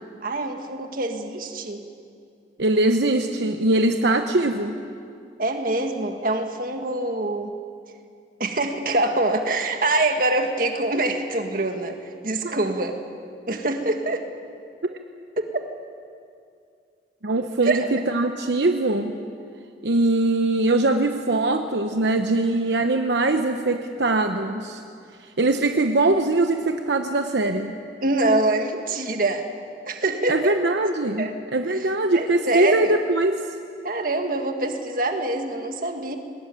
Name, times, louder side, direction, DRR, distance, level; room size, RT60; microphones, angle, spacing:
voice 1, 0.2-1.8 5.4-7.5 8.4-12.0 12.2-13.0 13.5-14.3 15.4-15.5 17.6-17.9 28.0-29.5 29.9-30.5 31.2-31.3 31.7-31.8 32.1-32.9 33.8-36.2, right 2 dB, 50° right, 5 dB, 1.8 m, -24 dB
voice 2, 2.6-4.8 12.4-12.6 14.9-15.0 17.2-19.1 19.8-24.8 25.2-27.8 30.3-33.4, right 2 dB, 70° right, 6 dB, 0.9 m, -22 dB
21.5 x 19.5 x 9.2 m, 2.4 s
head